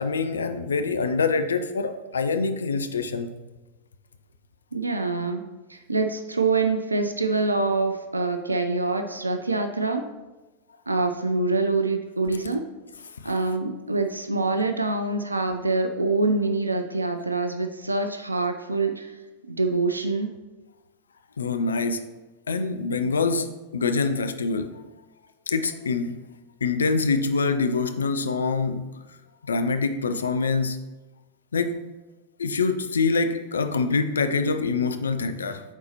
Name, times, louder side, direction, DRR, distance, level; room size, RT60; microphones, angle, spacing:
voice 1, 0.0-3.3 13.2-13.3 21.4-22.0 22.5-24.7 25.5-26.2 26.6-28.9 29.5-30.8 31.5-31.8 32.4-35.6, left 4 dB, 70° left, 9 dB, 0.4 m, -25 dB
voice 2, 4.7-5.4 5.7-10.1 10.9-12.7 13.2-19.1 19.5-20.3, right 3 dB, 80° right, 7 dB, 0.4 m, -25 dB
8.9 x 4.0 x 2.9 m, 1.2 s
figure-of-eight pair, 90°, 0 cm